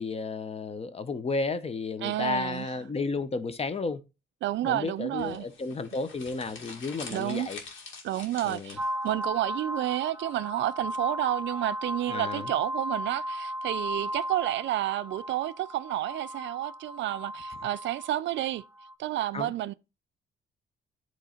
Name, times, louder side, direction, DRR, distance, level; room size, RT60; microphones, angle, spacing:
voice 1, 0.0-4.0 4.6-7.6 8.4-8.8 12.1-12.5 19.3-19.5, left 4 dB, 30° left, 0.7 m, -32 dB
voice 2, 2.0-2.7 4.4-5.5 7.1-7.5 8.0-18.6 19.0-19.7, right 14 dB, 70° right, 0.4 m, -30 dB
sound 1, 5.1-9.1, left 4 dB, 75° left, 1.9 m, -45 dB
sound 2, 8.8-18.9, equal, 10° right, 1.3 m, -36 dB
8.1 x 3.1 x 4.3 m
cardioid pair, 90°, 20 cm